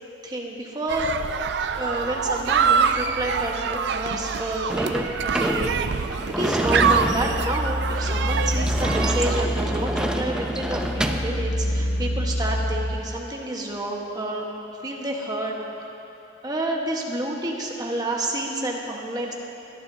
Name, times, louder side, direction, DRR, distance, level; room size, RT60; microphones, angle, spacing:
voice 1, 0.2-1.1 1.8-14.5 14.8-15.9 16.4-19.3, right 1 dB, 20° right, -1 dB, 1.2 m, -29 dB
sound 1, 0.9-9.5, right 6 dB, 60° right, 0.4 m, -25 dB
Sliding door / Slam, 4.7-11.4, right 1 dB, 5° right, 0.5 m, -28 dB
sound 2, 6.6-13.0, equal, 85° left, 1.0 m, -27 dB
23.0 x 10.5 x 2.7 m, 2.9 s
head